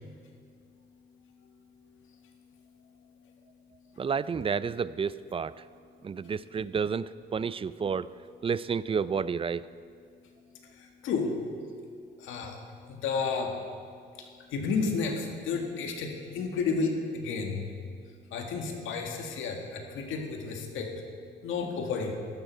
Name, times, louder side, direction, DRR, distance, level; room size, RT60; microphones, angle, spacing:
voice 1, 4.0-5.5 6.0-7.0 7.3-8.1 8.4-9.6, right 6 dB, 30° right, 17 dB, 0.4 m, -30 dB
voice 2, 10.7-11.4 12.2-12.6 12.9-13.6 14.2-17.7 18.3-20.9 21.4-22.1, left 4 dB, 85° left, 2 dB, 1.9 m, -32 dB
15.5 x 12.0 x 4.6 m, 2.2 s
cardioid pair, 90°, 20 cm